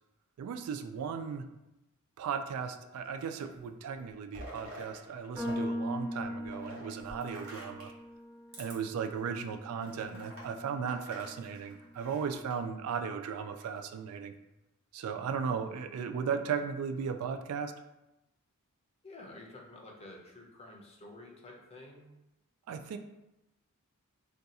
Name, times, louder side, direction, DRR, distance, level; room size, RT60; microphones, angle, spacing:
voice 1, 0.4-1.4 2.2-7.9 8.6-14.3 14.9-17.7 22.7-23.0, right 6 dB, 80° right, 11 dB, 0.3 m, -36 dB
sound 1, 2.9-3.6 4.0-5.6 5.8-8.0 8.5-8.7 9.2-9.3 9.8-12.6 13.4-14.0, equal, 65° right, 1.0 m, -49 dB
sound 2, 5.4-11.7, left 1 dB, 15° right, 0.6 m, -41 dB
voice 2, 19.0-22.1, left 2 dB, 30° left, -1 dB, 0.5 m, -50 dB
2.6 x 2.3 x 4.0 m, 0.94 s
head